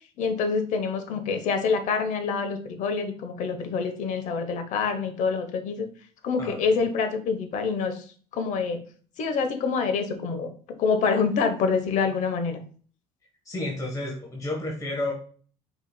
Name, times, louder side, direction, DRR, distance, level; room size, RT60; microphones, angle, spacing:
voice 1, 0.2-5.9 6.2-8.0 8.3-8.8 9.2-10.5 10.8-12.6, left 5 dB, 60° left, 8 dB, 0.9 m, -26 dB
voice 2, 6.4-6.8 13.4-15.1, left 2 dB, 25° left, -1 dB, 1.2 m, -31 dB
4.9 x 3.8 x 2.2 m, 0.43 s
supercardioid pair, 80°, 14 cm